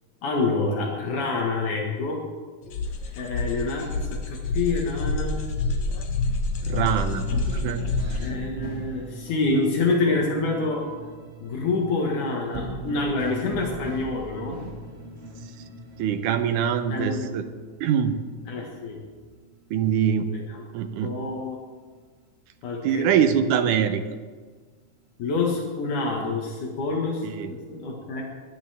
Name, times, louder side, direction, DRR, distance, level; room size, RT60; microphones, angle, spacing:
voice 1, 0.2-2.2 3.2-5.4 8.2-10.8 11.4-14.6 16.9-17.3 18.5-19.0 20.3-20.6 21.0-21.6 22.6-23.1 25.2-28.2, left 3 dB, 80° left, -1 dB, 3.2 m, -27 dB
sound 1, 2.7-8.3, left 3 dB, 65° left, 2.4 m, -27 dB
voice 2, 6.6-7.2 7.5-8.3 16.0-17.5 17.8-18.2 19.7-20.3 20.7-21.1 22.8-24.0 27.2-27.5, right 8 dB, 90° right, 8 dB, 2.4 m, -24 dB
sound 2, 7.0-20.0 20.3-22.2 22.6-24.3 24.7-26.5, right 1 dB, 25° right, 2.1 m, -40 dB
20.5 x 12.0 x 3.5 m, 1.5 s
omnidirectional pair, 3.5 m